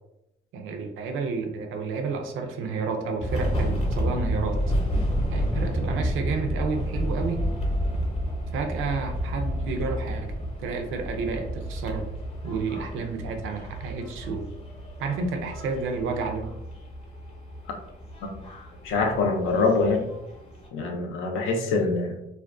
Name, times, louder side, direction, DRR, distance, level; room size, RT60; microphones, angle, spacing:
voice 1, 0.5-4.6 5.3-7.4 8.5-12.1 12.4-14.5 15.0-16.5, right 4 dB, 85° right, 5 dB, 0.5 m, -30 dB
sound 1, 3.2-20.7, equal, 30° left, 0.7 m, -30 dB
voice 2, 18.8-20.1 20.7-22.1, left 3 dB, 90° left, 3 dB, 0.5 m, -24 dB
2.4 x 2.1 x 2.4 m, 0.85 s
cardioid pair, 90°, 20 cm